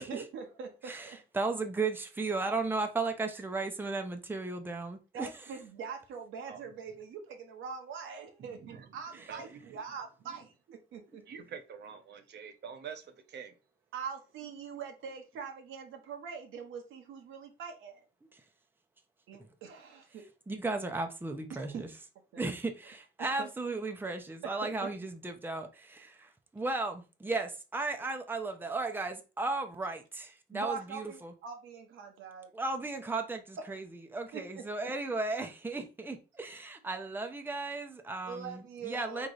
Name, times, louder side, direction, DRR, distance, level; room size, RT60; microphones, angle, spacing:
voice 1, 0.0-1.2 5.1-10.5 10.9-11.4 13.9-18.0 19.3-20.3 21.5-21.8 22.3-22.4 23.2-23.5 24.4-24.9 30.5-32.5 34.3-34.7 38.2-39.3, right 6 dB, 80° right, 1.1 m, -43 dB
voice 2, 0.9-5.3 20.5-21.9 22.4-31.3 32.5-33.9 34.1-39.3, right 3 dB, 10° right, 0.7 m, -35 dB
voice 3, 8.4-8.9 9.3-9.6 11.3-13.5, right 7 dB, 60° right, 0.8 m, -46 dB
3.8 x 3.2 x 3.9 m
cardioid pair, 90°, 20 cm